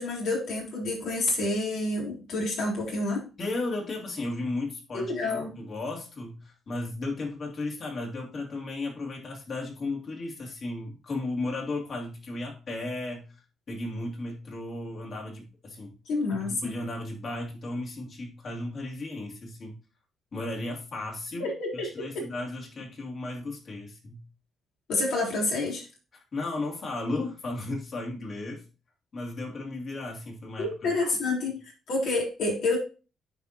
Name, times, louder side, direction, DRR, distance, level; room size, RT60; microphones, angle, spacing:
voice 1, 0.0-3.3 4.9-5.5 16.1-16.8 21.4-21.9 22.1-22.2 24.9-25.9 30.6-32.8, left 2 dB, 75° left, -3 dB, 3.8 m, -28 dB
voice 2, 3.4-13.3 13.7-15.9 16.3-19.8 20.3-24.2 26.1-28.6 29.1-30.9 31.2-31.3, left 2 dB, 50° left, 0 dB, 2.8 m, -35 dB
9.8 x 4.8 x 2.9 m, 0.33 s
cardioid pair, 90°, 0 cm